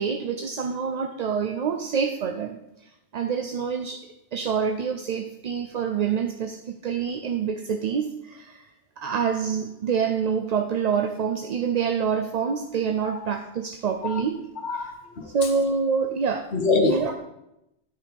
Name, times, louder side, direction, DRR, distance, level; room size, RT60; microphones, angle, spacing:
voice 1, 0.0-2.6 3.1-14.4 15.3-16.5 16.9-17.1, right 6 dB, 50° right, 5 dB, 0.5 m, -26 dB
voice 2, 14.6-15.4 16.5-17.1, left 3 dB, 85° left, 2 dB, 1.5 m, -25 dB
12.5 x 4.6 x 5.3 m, 0.87 s
omnidirectional pair, 1.1 m